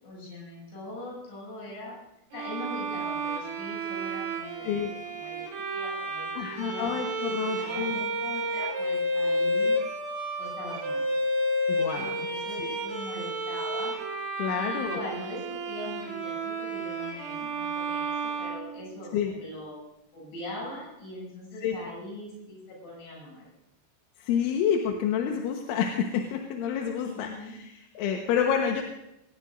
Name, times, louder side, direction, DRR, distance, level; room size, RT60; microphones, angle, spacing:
voice 1, 0.0-1.9 2.3-4.7 5.1-6.9 7.4-9.8 10.4-11.1 11.7-13.9 14.5-19.7 20.1-23.5 27.0-27.5, left 1 dB, 70° left, -4 dB, 10.0 m, -41 dB
Bowed string instrument, 2.3-19.3, right 1 dB, 75° right, 6.0 m, -31 dB
voice 2, 6.4-8.0 11.7-12.3 12.6-12.8 14.4-15.0 19.1-19.3 21.6-21.8 24.2-28.8, left 8 dB, 85° left, 1 dB, 3.7 m, -29 dB
24.0 x 18.0 x 2.6 m, 0.86 s
omnidirectional pair, 5.5 m